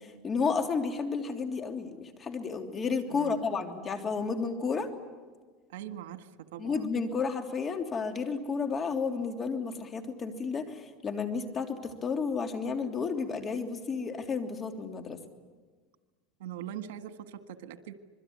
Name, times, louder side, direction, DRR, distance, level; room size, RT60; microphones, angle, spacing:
voice 1, 0.0-4.9 6.6-15.2, left 5 dB, 25° left, 5 dB, 3.1 m, -32 dB
voice 2, 3.1-3.5 5.7-6.9 16.4-17.9, right 10 dB, 90° right, 9 dB, 1.7 m, -42 dB
26.0 x 22.0 x 9.6 m, 1.4 s
supercardioid pair, 130°, 0 cm